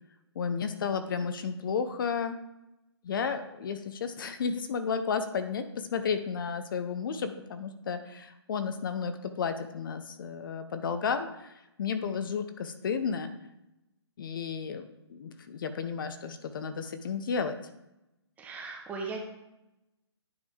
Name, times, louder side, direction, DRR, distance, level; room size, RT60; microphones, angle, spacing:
voice 1, 0.4-2.4 3.0-13.3 14.2-17.5, left 6 dB, 50° left, 9 dB, 0.6 m, -33 dB
voice 2, 18.4-19.2, right 3 dB, 10° right, 1 dB, 1.0 m, -37 dB
9.4 x 5.1 x 3.5 m, 0.92 s
hypercardioid pair, 150°, 15 cm